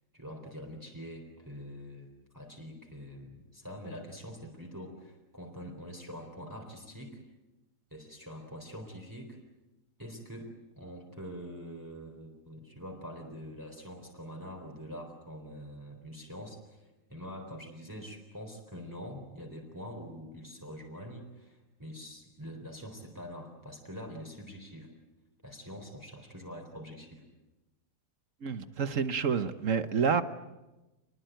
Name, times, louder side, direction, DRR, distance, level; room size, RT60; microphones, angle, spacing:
voice 1, 0.1-2.1 2.3-7.2 7.9-9.4 10.0-16.8 17.1-24.9 25.4-27.2, equal, 10° right, 1 dB, 3.9 m, -45 dB
voice 2, 28.4-30.2, right 6 dB, 55° right, 11 dB, 1.4 m, -28 dB
27.5 x 21.0 x 9.2 m, 1.1 s
omnidirectional pair, 1.7 m